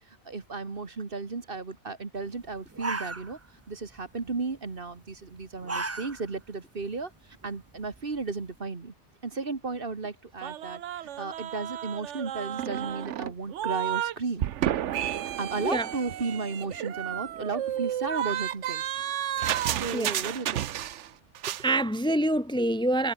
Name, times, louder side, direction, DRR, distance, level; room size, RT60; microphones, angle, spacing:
voice 1, 0.3-3.4 3.7-7.1 7.4-8.9 9.2-14.5 15.4-19.0 19.7-20.7 21.4-21.5, right 4 dB, 50° right, 2.0 m, -34 dB
sound 1, 2.3-2.4 2.7-3.7 4.0-4.3 5.3-6.4 6.8-6.9 7.4-8.4, right 3 dB, 20° right, 0.4 m, -35 dB
sound 2, 10.4-14.1 14.4-21.1 21.3-21.7, right 11 dB, 85° right, 1.0 m, -32 dB
voice 2, 15.6-15.9 19.9-20.2 21.6-23.1, right 1 dB, 5° left, 0.9 m, -26 dB
omnidirectional pair, 1.2 m